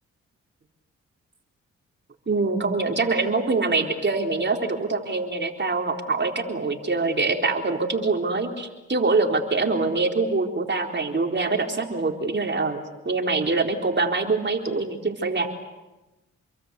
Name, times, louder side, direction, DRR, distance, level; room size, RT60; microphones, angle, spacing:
voice 1, 2.3-15.5, right 3 dB, 35° right, 3 dB, 4.1 m, -24 dB
28.0 x 22.5 x 8.4 m, 1.1 s
cardioid pair, 60°, 30 cm